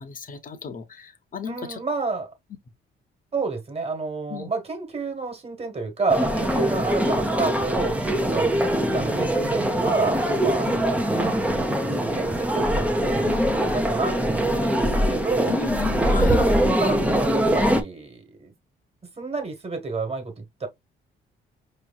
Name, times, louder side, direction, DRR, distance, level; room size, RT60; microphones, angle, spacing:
voice 1, 0.0-1.8 4.3-4.5 6.5-6.6 10.7-10.8 13.2-13.6 15.5-16.4, left 5 dB, 45° left, 1.0 m, -33 dB
voice 2, 1.5-2.3 3.3-8.6 8.9-11.4 11.9-15.5 16.4-18.5 19.0-20.7, right 3 dB, 30° right, 1.6 m, -29 dB
sound 1, 6.1-17.8, equal, 5° right, 0.8 m, -23 dB
5.0 x 3.1 x 2.3 m
cardioid pair, 90°, 20 cm